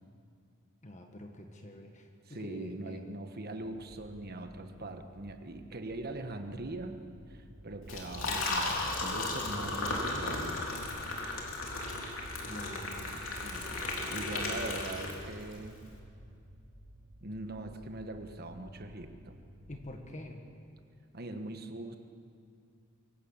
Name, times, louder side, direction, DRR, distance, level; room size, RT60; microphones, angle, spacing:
voice 1, 0.8-2.1 2.4-3.0 12.4-14.6 19.7-20.4, left 1 dB, 35° left, 3 dB, 1.6 m, -47 dB
voice 2, 2.2-10.8 14.1-15.8 17.2-19.4 21.1-22.0, right 2 dB, 45° right, 7 dB, 1.3 m, -41 dB
sound 1, 3.6-20.0, equal, 85° right, 4.7 m, -54 dB
Liquid, 7.8-15.5, left 2 dB, 65° left, 3.4 m, -35 dB
24.0 x 16.5 x 7.3 m, 2.4 s
head